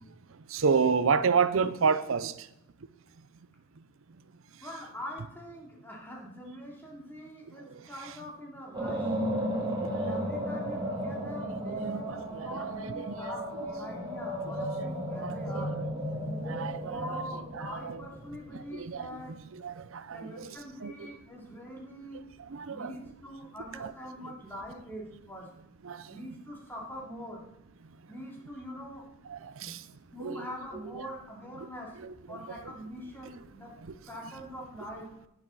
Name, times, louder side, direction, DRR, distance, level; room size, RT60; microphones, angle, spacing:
voice 1, 0.5-2.5 7.7-7.8 9.8-10.2 11.2-13.2 14.8-14.9 15.2-15.8 16.4-17.2 17.5-18.0 18.5-19.2 19.5-20.6 20.8-21.1 22.4-22.9 23.8-23.9 25.8-26.1 29.3-29.9 30.2-30.5 31.6-31.7 32.0-32.4, right 5 dB, 70° right, 0.6 m, -31 dB
voice 2, 4.6-9.1 10.0-15.7 16.9-19.3 20.1-22.2 22.7-25.5 26.1-27.4 28.1-29.0 29.6-29.8 30.1-31.9 32.3-33.7 34.1-35.1, equal, 10° left, 2.7 m, -43 dB
sound 1, 8.7-18.9, equal, 20° right, 1.9 m, -34 dB
10.5 x 9.8 x 4.1 m
head